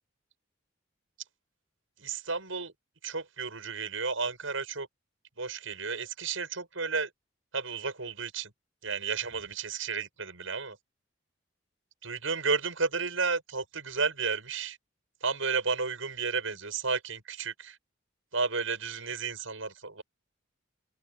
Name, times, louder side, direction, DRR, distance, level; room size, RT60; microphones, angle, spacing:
voice 1, 2.0-2.7 3.0-4.9 5.4-7.1 7.5-8.5 8.8-10.8 12.0-14.8 15.2-17.8 18.3-20.0, right 4 dB, 85° right, 6.8 m, -32 dB
open air
head